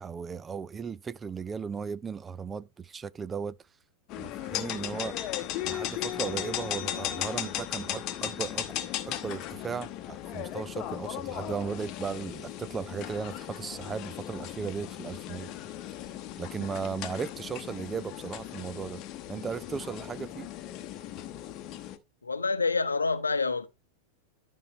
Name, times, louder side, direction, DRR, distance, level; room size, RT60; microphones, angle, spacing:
voice 1, 0.0-3.6 4.2-5.1 5.6-8.8 9.1-15.5 16.4-19.0 19.3-20.5, right 6 dB, 20° right, 0.4 m, -36 dB
sound 1, 4.1-22.0, left 12 dB, 40° left, 0.9 m, -37 dB
voice 2, 22.2-23.7, left 4 dB, 75° left, 0.7 m, -27 dB
12.0 x 5.4 x 3.1 m
figure-of-eight pair, 90°, 0 cm